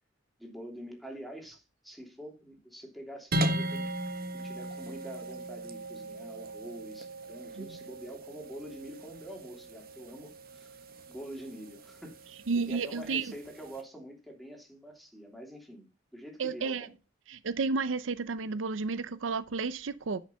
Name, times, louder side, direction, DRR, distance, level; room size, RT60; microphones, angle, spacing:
voice 1, 0.4-3.9 4.3-15.9 16.1-16.9, equal, ahead, 3.1 m, -46 dB
sound 1, 3.3-13.8, right 1 dB, 50° right, 1.5 m, -38 dB
voice 2, 12.5-13.3 16.4-16.9 17.3-20.2, right 4 dB, 75° right, 0.6 m, -32 dB
10.5 x 6.3 x 5.4 m
head